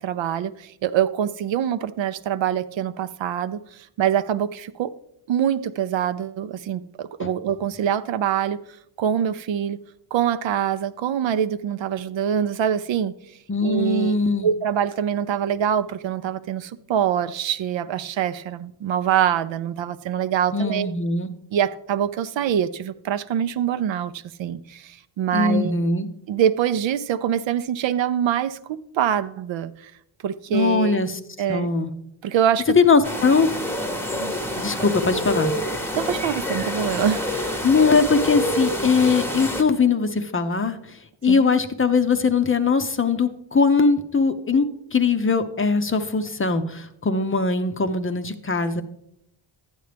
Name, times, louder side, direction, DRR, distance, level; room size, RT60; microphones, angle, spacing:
voice 1, 0.0-3.6 4.0-4.9 5.3-8.6 9.0-9.8 10.1-13.1 13.6-14.2 14.4-20.9 21.5-24.1 24.4-25.8 26.3-29.9 30.2-31.0 31.4-31.7 32.2-32.8 34.1-34.9 35.9-37.6 41.3-41.4, right 9 dB, 65° right, 0.6 m, -24 dB
voice 2, 13.5-14.5 20.5-21.3 25.3-26.1 30.5-31.2 31.5-31.9 32.8-33.5 34.6-35.5 37.6-48.8, left 4 dB, 25° left, 0.6 m, -21 dB
sound 1, 33.0-39.6, left 1 dB, 5° left, 0.9 m, -27 dB
11.5 x 9.1 x 3.3 m
cardioid pair, 90°, 49 cm